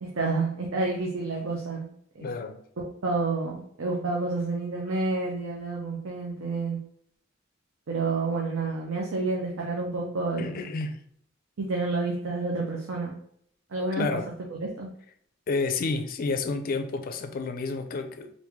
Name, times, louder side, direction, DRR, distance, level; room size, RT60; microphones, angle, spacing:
voice 1, 0.0-2.3 2.8-6.8 7.9-10.7 11.6-13.2 13.7-14.1 14.5-14.9, right 3 dB, 75° right, 0.6 m, -29 dB
voice 2, 2.2-2.6 10.4-11.0 14.0-14.3 15.5-18.3, left 4 dB, 45° left, 0.4 m, -30 dB
3.5 x 2.5 x 3.1 m
head